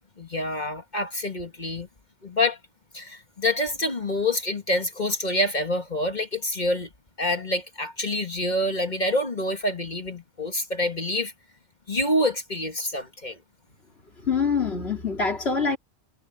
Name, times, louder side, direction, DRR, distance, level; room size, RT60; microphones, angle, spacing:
voice 1, 0.2-1.9 2.2-2.6 2.9-6.9 7.2-11.3 11.9-13.4, left 1 dB, 40° left, 1.9 m, -27 dB
voice 2, 14.2-15.8, left 5 dB, 60° left, 3.5 m, -25 dB
omnidirectional pair, 1.2 m